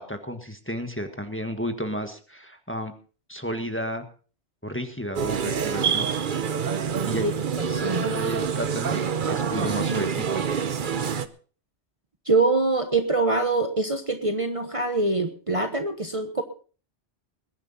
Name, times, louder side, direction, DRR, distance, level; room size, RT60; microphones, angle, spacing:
voice 1, 0.0-2.9 3.3-4.0 4.6-6.1 7.1-7.3 8.0-9.0 9.3-10.4, equal, 10° left, 6 dB, 1.4 m, -32 dB
sound 1, 5.2-11.3, right 6 dB, 50° right, 0.9 m, -26 dB
voice 2, 7.6-8.1 12.3-16.4, right 3 dB, 30° right, 6 dB, 1.2 m, -24 dB
21.0 x 10.5 x 4.2 m, 0.39 s
omnidirectional pair, 1.2 m